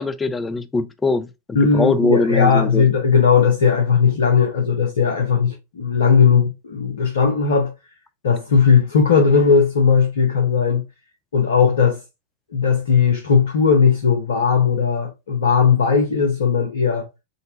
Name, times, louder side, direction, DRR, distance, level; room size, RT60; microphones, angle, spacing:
voice 1, 0.0-2.9, left 3 dB, 15° left, 0.4 m, -22 dB
voice 2, 1.5-7.7 8.2-10.8 11.3-12.0 12.5-17.1, left 6 dB, 65° left, 0.7 m, -17 dB
3.9 x 2.2 x 3.9 m
figure-of-eight pair, 90°, 0 cm